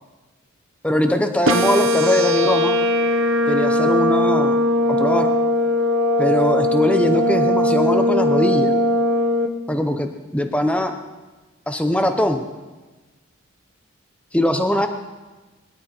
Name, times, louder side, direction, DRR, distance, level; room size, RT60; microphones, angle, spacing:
voice 1, 0.8-2.8 3.5-4.6 4.9-5.3 6.2-8.7 9.7-10.9 11.7-12.4 14.3-14.9, left 1 dB, 5° left, 6 dB, 0.8 m, -21 dB
sound 1, 1.5-9.5, left 1 dB, 70° right, 1.1 m, -19 dB
21.5 x 11.5 x 4.4 m, 1.2 s
head